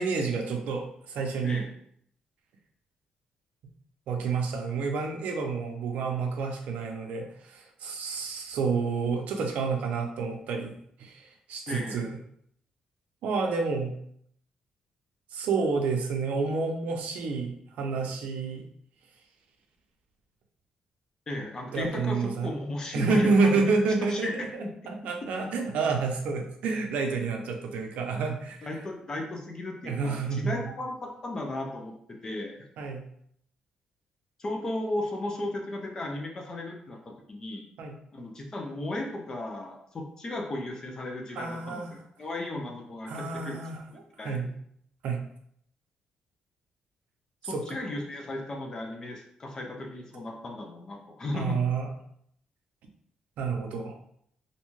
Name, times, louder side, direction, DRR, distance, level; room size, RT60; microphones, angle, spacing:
voice 1, 0.0-1.6 4.1-12.2 13.2-14.0 15.3-18.7 21.7-22.5 22.9-28.7 29.9-30.7 32.8-33.1 37.8-37.9 41.3-41.9 43.1-44.5 45.0-45.2 47.4-47.8 51.3-51.9 53.4-54.0, right 4 dB, 85° right, 3 dB, 0.5 m, -29 dB
voice 2, 11.7-12.0 21.3-23.6 24.1-24.3 24.6-24.9 28.6-32.7 34.4-37.6 38.1-43.6 43.9-44.5 47.4-51.6, left 2 dB, 30° left, 2 dB, 0.5 m, -35 dB
2.6 x 2.2 x 3.0 m, 0.68 s
cardioid pair, 145°, 2 cm